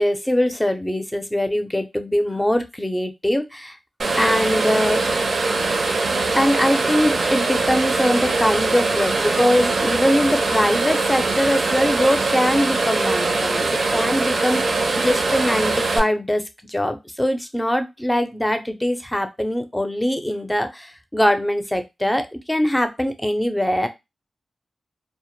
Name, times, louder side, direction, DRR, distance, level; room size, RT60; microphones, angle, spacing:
voice 1, 0.0-3.8 4.2-5.1 6.4-23.9, left 1 dB, 10° left, 7 dB, 0.5 m, -22 dB
sound 1, 4.0-16.0, right 3 dB, 70° right, 0.5 m, -22 dB
2.0 x 2.0 x 3.0 m, 0.22 s
cardioid pair, 50°, 0 cm